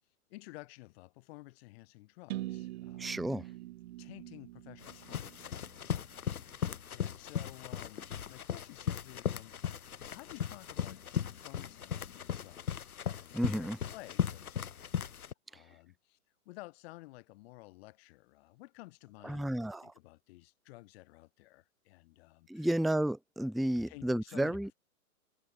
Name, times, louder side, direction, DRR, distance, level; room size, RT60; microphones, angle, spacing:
voice 1, 0.3-3.5 4.0-6.0 6.4-9.8 10.1-14.8 15.5-16.2 16.4-22.7 23.9-24.7, left 21 dB, 40° left, 6.1 m, -53 dB
sound 1, 2.3-6.2, right 16 dB, 45° right, 1.5 m, -44 dB
voice 2, 3.0-3.4 13.3-13.8 19.2-19.9 22.5-24.7, right 1 dB, ahead, 0.6 m, -32 dB
sound 2, 4.8-15.3, left 8 dB, 70° left, 2.5 m, -37 dB
hypercardioid pair, 125°, 45 cm